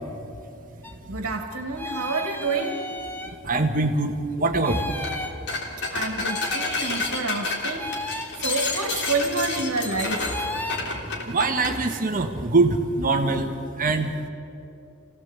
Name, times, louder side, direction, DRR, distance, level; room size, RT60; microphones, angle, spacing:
sound 1, 0.8-0.9 1.8-3.4 4.6-5.4 6.2-6.8 7.8-8.3 10.3-10.9, left 1 dB, 10° left, 1.3 m, -33 dB
voice 1, 1.1-2.8 5.9-7.9 8.4-10.2, right 3 dB, 65° right, 4 dB, 2.1 m, -28 dB
voice 2, 3.4-4.9 11.3-13.5 13.8-14.1, right 3 dB, 40° right, 5 dB, 1.4 m, -23 dB
sound 2, 4.9-5.2 5.5-11.8, left 3 dB, 50° left, 3.4 m, -29 dB
27.0 x 17.0 x 8.2 m, 2.8 s
head